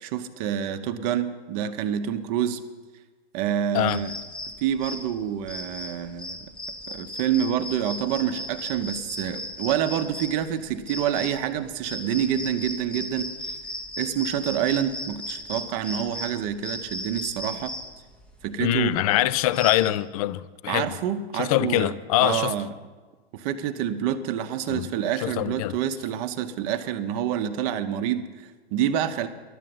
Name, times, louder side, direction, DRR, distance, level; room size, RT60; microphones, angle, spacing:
voice 1, 0.0-2.6 3.3-4.1 4.6-6.5 6.9-13.6 14.0-17.8 18.4-19.2 20.7-21.9 22.2-22.7 23.3-29.3, right 9 dB, 35° right, 0.8 m, -27 dB
sound 1, 3.9-19.9, equal, 5° left, 0.7 m, -36 dB
voice 2, 18.6-20.9 21.4-22.5 24.7-24.9 25.2-25.8, left 14 dB, 35° left, 0.4 m, -24 dB
11.0 x 7.5 x 9.3 m
hypercardioid pair, 125°, 33 cm